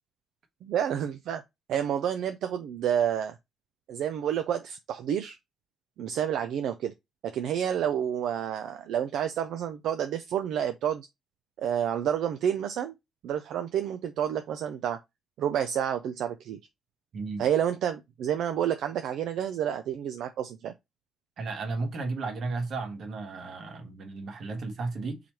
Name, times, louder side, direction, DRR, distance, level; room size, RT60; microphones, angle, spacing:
voice 1, 0.6-1.4 1.7-3.4 3.9-5.4 6.0-6.9 7.2-11.1 11.6-12.9 13.2-15.0 15.4-16.6 17.4-20.7, right 9 dB, 80° right, 0.4 m, -29 dB
voice 2, 17.1-17.5 21.4-25.2, right 3 dB, 60° right, 1.3 m, -34 dB
3.9 x 3.1 x 4.3 m
cardioid pair, 90°, 0 cm